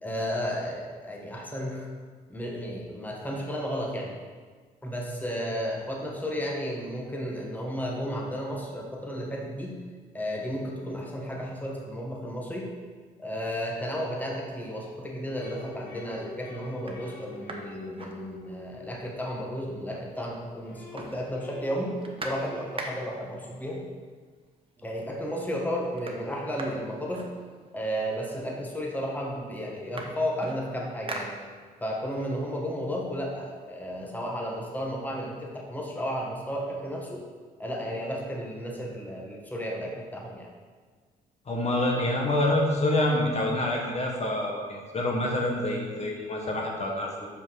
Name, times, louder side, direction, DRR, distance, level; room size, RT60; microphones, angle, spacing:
voice 1, 0.0-1.9 2.3-4.1 4.8-9.8 10.1-12.7 13.2-22.0 22.2-23.8 24.8-27.3 27.7-31.3 31.8-37.2 37.6-40.5, equal, 10° left, -1 dB, 1.5 m, -33 dB
sound 1, 15.3-19.9 20.3-23.1, left 4 dB, 75° left, 1.0 m, -47 dB
sound 2, 15.6-15.8 16.3-16.4 16.7-18.8 19.2-19.3 19.5-20.3 20.6-23.3 24.3-24.4 24.8-25.3 25.5-27.9 28.7-28.8 29.1-32.0 32.4-34.1, right 2 dB, 35° right, 1.1 m, -42 dB
voice 2, 41.5-47.3, left 1 dB, 40° left, -1 dB, 1.5 m, -27 dB
5.7 x 5.1 x 6.4 m, 1.5 s
supercardioid pair, 70°, 17 cm